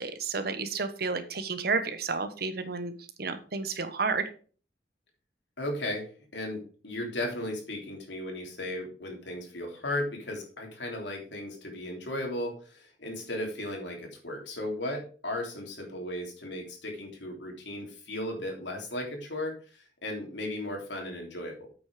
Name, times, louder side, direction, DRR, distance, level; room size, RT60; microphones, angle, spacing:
voice 1, 0.0-2.9 3.2-4.3, right 4 dB, 55° right, 10 dB, 1.1 m, -31 dB
voice 2, 5.6-21.7, left 1 dB, 75° left, 1 dB, 3.2 m, -36 dB
8.5 x 6.2 x 5.0 m, 0.39 s
head